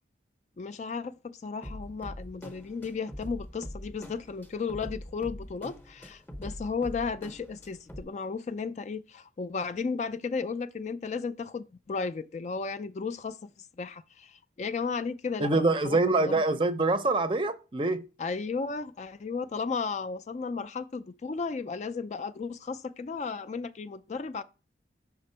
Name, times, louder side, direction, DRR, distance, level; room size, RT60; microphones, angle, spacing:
voice 1, 0.6-16.4 18.2-24.4, left 5 dB, 35° left, 0.3 m, -34 dB
sound 1, 1.6-8.0, equal, 10° left, 0.7 m, -43 dB
voice 2, 15.4-18.0, right 2 dB, 25° right, 0.5 m, -25 dB
5.9 x 3.6 x 4.3 m
head